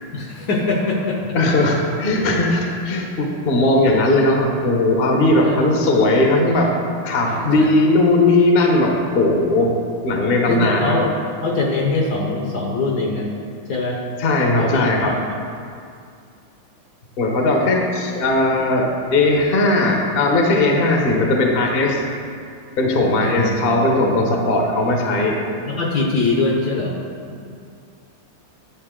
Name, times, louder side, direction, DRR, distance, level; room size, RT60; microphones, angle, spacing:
voice 1, 0.1-1.2 5.4-5.5 7.3-7.7 10.5-11.1 11.4-13.3 13.7-14.0 14.6-15.3 23.2-23.6 25.7-27.0 27.3-27.4, left 3 dB, 60° left, 0 dB, 1.2 m, -22 dB
voice 2, 1.3-6.7 7.0-9.7 10.0-11.0 14.2-15.1 17.2-22.0 22.8-25.4, left 2 dB, 45° left, 1 dB, 0.8 m, -18 dB
10.0 x 7.0 x 3.7 m, 2.3 s
omnidirectional pair, 2.3 m